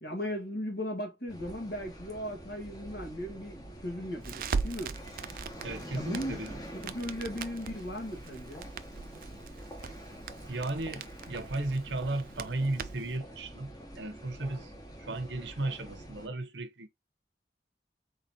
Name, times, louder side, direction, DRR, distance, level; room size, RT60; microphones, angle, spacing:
voice 1, 0.0-5.0 5.9-6.4 6.7-8.7, equal, 65° left, 1.8 m, -37 dB
sound 1, 1.3-16.3, equal, 20° left, 1.0 m, -46 dB
Crackle, 4.2-13.2, right 5 dB, 50° right, 0.4 m, -40 dB
voice 2, 5.6-6.5 10.5-14.7 15.0-16.9, right 2 dB, 90° right, 1.0 m, -35 dB
4.1 x 4.0 x 2.8 m
head